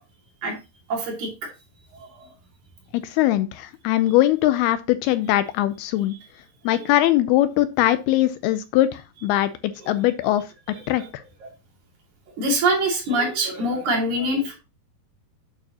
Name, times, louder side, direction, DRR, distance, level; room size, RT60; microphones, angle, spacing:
voice 1, 0.9-1.5 1.9-2.3 6.7-6.9 9.8-10.3 10.7-11.1 11.4-11.5 12.4-14.6, right 1 dB, 50° right, 0 dB, 3.4 m, -25 dB
voice 2, 3.0-6.2 6.7-9.5 9.9-10.4 10.9-11.0, left 14 dB, 80° left, 12 dB, 2.5 m, -21 dB
8.9 x 6.6 x 2.8 m, 0.27 s
omnidirectional pair, 4.7 m